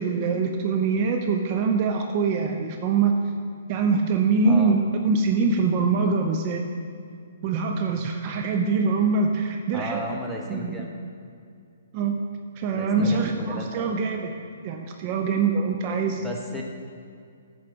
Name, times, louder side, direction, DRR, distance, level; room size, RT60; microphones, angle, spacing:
voice 1, 0.0-3.3 3.7-6.6 7.4-10.2 10.5-10.8 11.9-12.2 12.6-14.3 14.6-16.2, right 4 dB, 40° right, 4 dB, 0.6 m, -24 dB
voice 2, 4.4-4.7 9.7-10.9 12.7-13.9 16.2-16.6, equal, ahead, -2 dB, 1.0 m, -34 dB
9.0 x 4.8 x 5.9 m, 2.3 s
hypercardioid pair, 130°, 0 cm